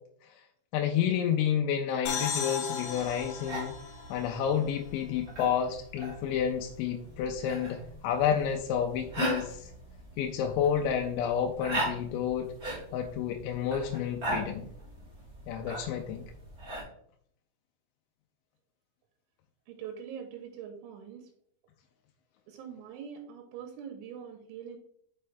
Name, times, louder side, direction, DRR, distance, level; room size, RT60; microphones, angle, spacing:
voice 1, 0.7-3.7 4.1-9.7 10.2-12.5 12.9-14.7 15.5-16.2, left 8 dB, 85° left, 3 dB, 2.9 m, -30 dB
sound 1, 2.1-5.6, left 6 dB, 65° left, 2.4 m, -37 dB
sound 2, 2.8-16.8, right 1 dB, 25° right, 2.1 m, -40 dB
voice 2, 19.7-21.3 22.5-24.8, right 8 dB, 90° right, 3 dB, 3.3 m, -43 dB
6.1 x 5.5 x 3.3 m, 0.66 s
omnidirectional pair, 5.3 m